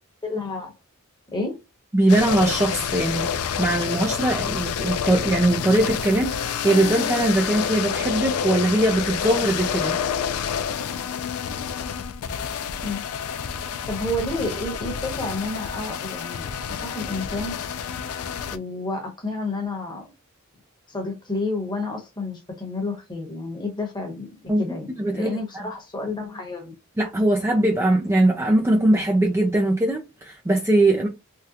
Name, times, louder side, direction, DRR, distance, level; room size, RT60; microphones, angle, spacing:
voice 1, 0.2-0.7 1.3-1.6 12.8-13.0 13.9-17.7 18.5-20.1 20.9-26.7, left 2 dB, 20° left, 1.0 m, -30 dB
voice 2, 1.9-3.2 3.6-9.9 24.5-25.6 27.0-31.1, right 1 dB, 10° right, 0.4 m, -21 dB
sound 1, 2.1-18.6, left 7 dB, 80° left, 0.4 m, -28 dB
3.6 x 2.2 x 2.7 m
head